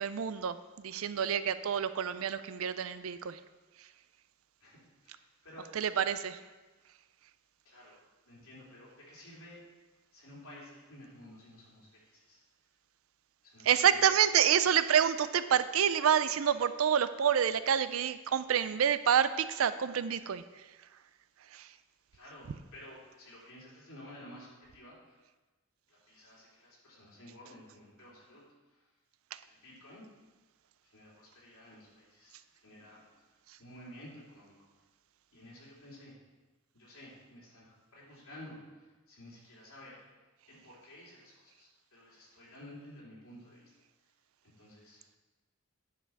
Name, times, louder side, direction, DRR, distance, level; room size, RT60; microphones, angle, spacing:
voice 1, 0.0-3.4 5.8-6.4 13.6-20.4 21.5-21.6, right 8 dB, 75° right, 13 dB, 0.4 m, -28 dB
voice 2, 5.0-5.7 7.6-8.0 8.2-9.6 10.1-12.4 13.4-14.3 22.1-25.2 25.9-28.8 29.5-30.1 30.8-33.0 33.6-34.5 35.3-36.2 36.7-40.0 40.5-43.6 44.4-45.0, left 1 dB, 90° left, -6 dB, 3.2 m, -53 dB
9.8 x 5.7 x 4.7 m, 1.2 s
head